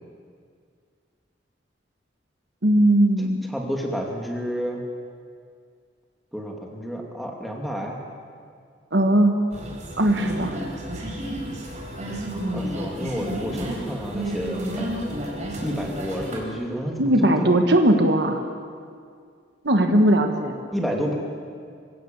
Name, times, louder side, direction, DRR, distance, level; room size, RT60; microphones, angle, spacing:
voice 1, 2.6-3.4 8.9-9.4 10.0-10.6 17.0-18.4 19.6-20.6, right 1 dB, 65° right, 5 dB, 1.5 m, -19 dB
voice 2, 3.5-4.8 6.3-8.0 12.5-15.1 15.6-17.6 20.7-21.2, equal, ahead, -1 dB, 2.6 m, -30 dB
sound 1, 9.5-16.4, equal, 40° right, 4.1 m, -31 dB
25.0 x 16.5 x 7.3 m, 2.2 s
head